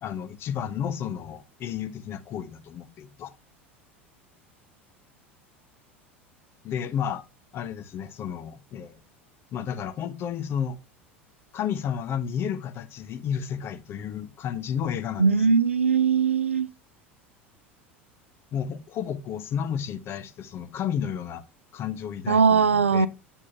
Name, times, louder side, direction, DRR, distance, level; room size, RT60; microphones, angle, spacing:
voice 1, 0.0-3.3 6.6-7.2 7.5-9.0 9.5-10.8 11.5-15.5 18.5-21.4 21.7-23.1, left 8 dB, 35° left, 0.8 m, -32 dB
voice 2, 15.2-16.7 22.3-23.1, right 6 dB, 80° right, 0.4 m, -20 dB
8.4 x 7.2 x 2.7 m
figure-of-eight pair, 75°, 7 cm